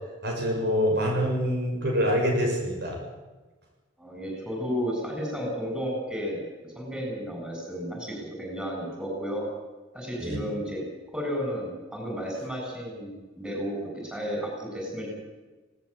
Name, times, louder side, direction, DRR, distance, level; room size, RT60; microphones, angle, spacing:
voice 1, 0.2-3.0 10.2-10.4, equal, 60° right, 0 dB, 6.6 m, -25 dB
voice 2, 4.0-9.5 9.9-10.8 11.1-15.1, equal, 5° right, -1 dB, 7.7 m, -33 dB
18.5 x 18.5 x 8.9 m, 1.2 s
head